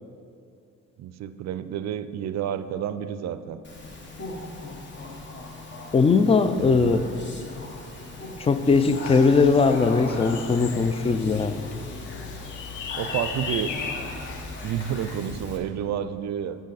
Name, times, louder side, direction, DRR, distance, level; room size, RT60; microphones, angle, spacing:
voice 1, 1.0-3.6 6.6-7.1 12.9-13.7 14.6-16.6, right 9 dB, 60° right, 13 dB, 0.4 m, -30 dB
Speech, 3.6-15.6, left 2 dB, 40° left, 1.2 m, -38 dB
voice 2, 5.9-7.0 8.4-11.6, left 4 dB, 20° left, 11 dB, 0.3 m, -20 dB
sound 1, 8.6-15.3, left 5 dB, 80° left, 0.8 m, -37 dB
8.8 x 6.0 x 4.1 m, 2.5 s
cardioid pair, 90°, 30 cm